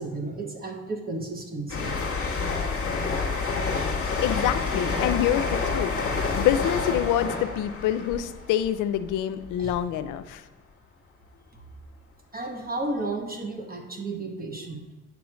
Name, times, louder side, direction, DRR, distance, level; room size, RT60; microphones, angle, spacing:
voice 1, 0.0-2.0 9.6-9.7 12.3-14.9, right 2 dB, 30° right, 2 dB, 1.1 m, -33 dB
sound 1, 1.7-9.2 9.5-9.8, left 4 dB, 45° left, 1.5 m, -28 dB
voice 2, 4.2-10.4, left 11 dB, 90° left, 12 dB, 0.5 m, -26 dB
8.5 x 3.1 x 6.2 m, 1.1 s
cardioid pair, 90°, 30 cm